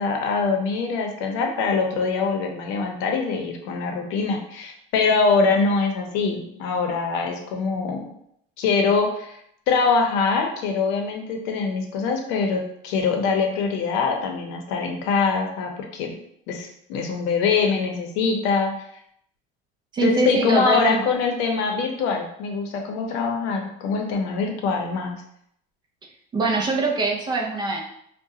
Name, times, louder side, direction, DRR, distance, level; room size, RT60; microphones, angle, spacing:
voice 1, 0.0-8.1 8.6-9.4 9.7-16.1 16.5-18.7 20.0-25.2, left 4 dB, 75° left, 3 dB, 0.7 m, -23 dB
voice 2, 19.9-21.0 26.3-27.8, right 2 dB, 25° right, 0 dB, 0.4 m, -23 dB
4.8 x 2.2 x 2.7 m, 0.71 s
cardioid pair, 160°, 20 cm